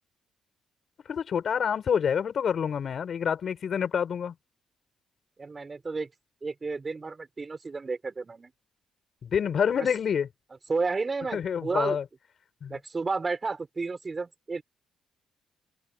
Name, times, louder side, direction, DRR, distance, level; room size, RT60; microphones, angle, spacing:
voice 1, 1.1-4.3 9.2-10.3 11.3-12.0 12.6-12.8, left 7 dB, 55° left, 6.2 m, -27 dB
voice 2, 5.4-6.1 6.4-8.5 9.7-9.9 10.7-12.0 12.7-14.6, right 4 dB, 30° right, 5.2 m, -32 dB
cardioid pair, 90°, 0 cm